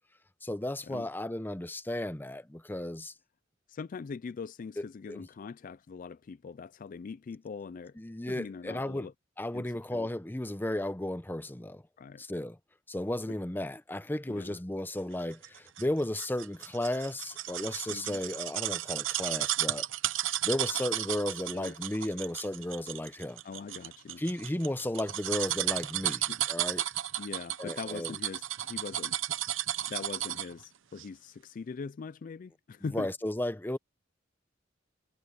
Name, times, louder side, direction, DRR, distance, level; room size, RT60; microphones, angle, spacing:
voice 1, 0.4-3.1 4.8-5.2 8.0-9.1 9.4-11.8 12.2-12.6 12.9-19.9 20.4-23.4 24.2-26.8 27.6-28.2 32.9-33.8, left 1 dB, 10° left, 0.7 m, -34 dB
voice 2, 3.7-8.0 8.3-9.1 9.5-9.7 9.9-10.1 12.0-12.2 13.3-13.4 14.3-14.6 17.9-18.2 21.5-21.7 23.4-24.2 26.3-26.4 27.2-29.1 29.9-33.1, left 5 dB, 45° left, 0.3 m, -42 dB
sound 1, 15.4-30.6 31.0-31.1, right 13 dB, 80° right, 0.9 m, -33 dB
head